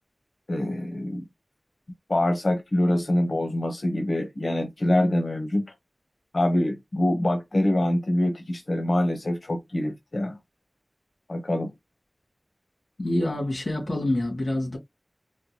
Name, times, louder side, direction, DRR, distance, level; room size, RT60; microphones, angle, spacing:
voice 1, 0.5-1.2 2.1-5.7 6.3-10.4 11.3-11.7, left 1 dB, 80° left, 1.1 m, -25 dB
voice 2, 13.0-14.8, left 1 dB, 55° left, 2.5 m, -26 dB
4.6 x 2.1 x 3.1 m
wide cardioid pair, 55°, 0 cm